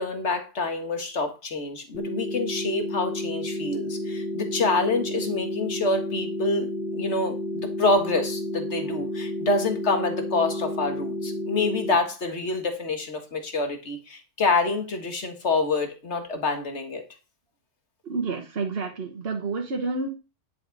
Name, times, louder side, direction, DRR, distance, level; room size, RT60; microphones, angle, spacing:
voice 1, 0.0-6.7 6.9-17.0, left 3 dB, 65° left, 5 dB, 2.0 m, -27 dB
sound 1, 1.9-12.0, left 1 dB, 10° right, 2.7 m, -31 dB
voice 2, 18.0-20.1, right 3 dB, 50° right, 3 dB, 1.4 m, -29 dB
10.5 x 7.7 x 4.1 m, 0.32 s
omnidirectional pair, 1.3 m